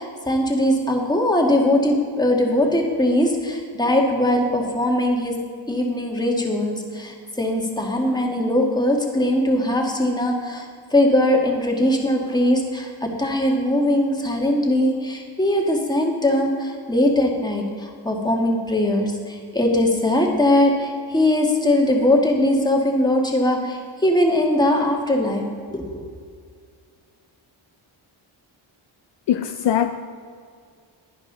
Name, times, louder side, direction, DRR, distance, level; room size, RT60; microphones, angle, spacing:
voice 1, 0.0-5.3 5.7-25.4 25.7-26.0, left 1 dB, 10° left, 1 dB, 1.7 m, -20 dB
voice 2, 29.3-29.9, left 10 dB, 60° left, 7 dB, 0.6 m, -21 dB
11.0 x 9.9 x 3.9 m, 2.1 s
cardioid pair, 85°, 50 cm